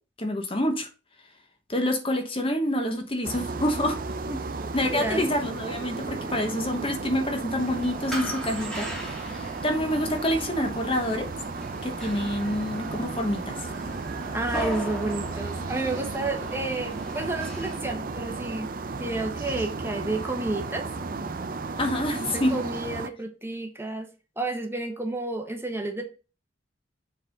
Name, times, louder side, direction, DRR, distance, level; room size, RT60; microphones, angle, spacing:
voice 1, 0.2-0.9 1.7-4.0 4.7-11.3 11.8-13.6 21.8-22.6, left 1 dB, 30° left, 1.1 m, -27 dB
sound 1, 3.2-23.1, right 3 dB, 45° right, 0.6 m, -34 dB
voice 2, 4.3-5.2 14.3-18.7 19.0-20.9 22.3-24.1 24.4-26.1, right 2 dB, 10° right, 1.1 m, -31 dB
sound 2, 7.6-17.8, right 1 dB, 5° left, 1.7 m, -38 dB
7.5 x 4.1 x 5.2 m
head